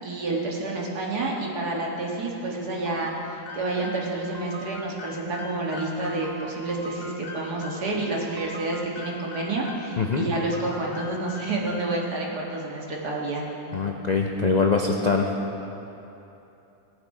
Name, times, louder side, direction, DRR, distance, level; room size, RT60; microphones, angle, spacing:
voice 1, 0.0-13.4, right 2 dB, 85° right, -3 dB, 2.2 m, -29 dB
sound 1, 2.9-7.9 8.4-10.0 10.3-12.0, left 2 dB, 40° left, 1.2 m, -41 dB
voice 2, 13.7-15.3, left 4 dB, 65° left, 1 dB, 0.4 m, -23 dB
17.5 x 7.1 x 4.9 m, 2.9 s
omnidirectional pair, 1.7 m